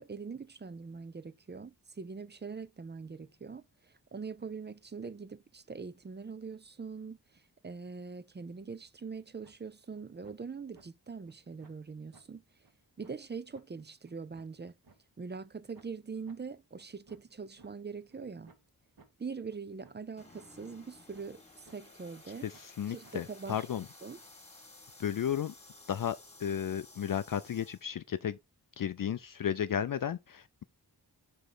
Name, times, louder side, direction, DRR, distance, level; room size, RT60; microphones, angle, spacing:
voice 1, 0.0-12.4 13.0-14.8 15.2-18.5 19.2-22.5 22.9-23.7 24.0-24.2, right 5 dB, 25° right, 0.4 m, -43 dB
sound 1, 9.4-9.5 9.9-10.3 10.7-10.8 11.3-11.4 11.6-11.8 12.1-12.2 12.6-12.7 13.0-13.1 13.5-13.6 14.0-15.0 15.4-15.5 15.8-15.9 16.3-16.4 16.8-17.7 18.1-18.2 18.5-18.6 19.0-19.1 19.5-19.6 19.8-20.0 20.3-20.5 20.9-21.4 21.7-21.8 22.2-22.3 22.5-22.7 23.0-23.1 23.5-23.6, right 4 dB, 60° right, 1.8 m, -59 dB
sound 2, 20.2-27.9, left 2 dB, 15° left, 1.8 m, -55 dB
voice 2, 22.4-23.8 25.0-25.5 25.9-28.4 28.8-30.6, left 9 dB, 55° left, 0.4 m, -34 dB
5.5 x 5.0 x 3.8 m
wide cardioid pair, 105°, 40 cm